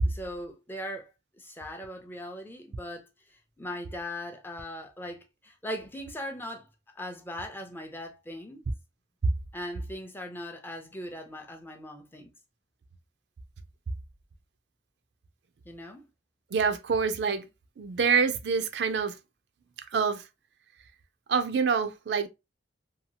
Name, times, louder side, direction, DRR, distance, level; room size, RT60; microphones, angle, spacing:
voice 1, 0.0-1.1 1.4-6.7 7.0-8.6 9.5-12.3 15.7-16.1, left 1 dB, 10° left, 0.4 m, -39 dB
voice 2, 16.5-17.5 17.8-19.1 19.9-20.2 21.3-22.3, right 5 dB, 65° right, 0.4 m, -26 dB
2.8 x 2.3 x 2.7 m
head